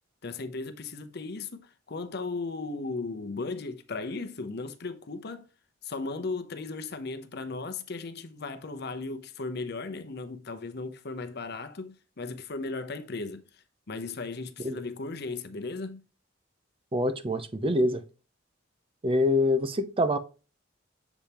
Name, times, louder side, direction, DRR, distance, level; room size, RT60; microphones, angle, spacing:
voice 1, 0.2-5.5 5.8-16.0, left 3 dB, 55° left, 0.8 m, -36 dB
voice 2, 16.9-18.0 19.0-20.2, left 1 dB, 25° right, 0.5 m, -25 dB
7.1 x 4.2 x 3.4 m
head